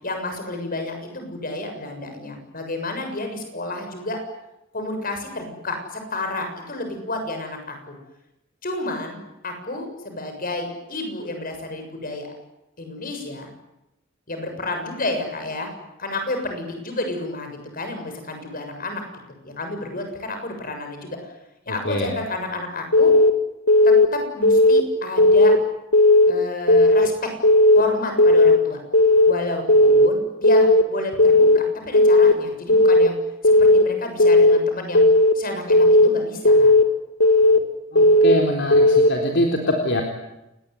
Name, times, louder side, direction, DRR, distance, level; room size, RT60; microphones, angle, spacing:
voice 1, 0.0-4.2 4.7-8.0 8.6-12.3 12.8-13.5 14.3-15.7 16.0-19.0 19.4-21.2 21.7-23.1 23.8-25.5 26.3-27.3 27.7-28.8 29.3-33.2 33.4-35.0 35.3-36.7, left 2 dB, 45° left, 5 dB, 7.1 m, -30 dB
Keyboard (musical) / Alarm, 22.9-23.3 23.7-24.1 24.4-24.8 25.2-25.6 25.9-26.3 26.7-27.1 27.4-27.8 28.2-28.6 28.9-29.3 29.7-30.1 30.4-30.8 31.2-31.6 31.9-32.3 32.7-33.1 33.4-33.8 34.2-34.6 34.9-35.3 35.7-36.1 36.5-36.8 37.2-37.6 38.0-38.3 38.7-39.1, left 1 dB, 80° left, 2.5 m, -14 dB
voice 2, 37.9-40.0, left 1 dB, 60° left, 2 dB, 3.9 m, -23 dB
29.0 x 20.0 x 9.6 m, 0.91 s
head